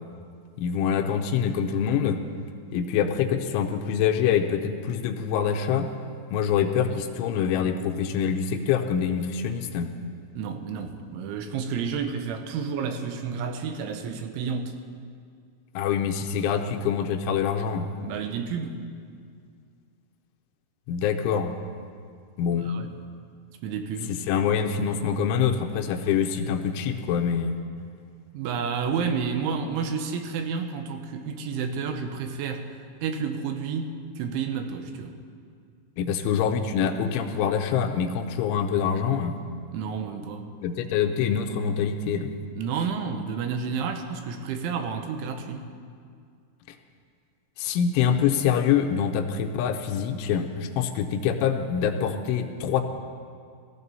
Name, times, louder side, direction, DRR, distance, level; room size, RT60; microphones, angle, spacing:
voice 1, 0.6-2.2 2.7-5.9 6.3-9.9 15.8-17.9 20.9-21.5 22.4-22.7 24.1-27.6 36.0-39.4 40.6-42.3 47.6-52.8, left 7 dB, 90° left, 6 dB, 3.2 m, -25 dB
voice 2, 10.4-14.8 18.0-18.8 22.6-22.9 23.6-24.2 28.3-35.2 39.7-40.5 42.5-45.7, right 6 dB, 80° right, 6 dB, 3.3 m, -30 dB
16.5 x 15.5 x 4.1 m, 2.2 s
omnidirectional pair, 5.5 m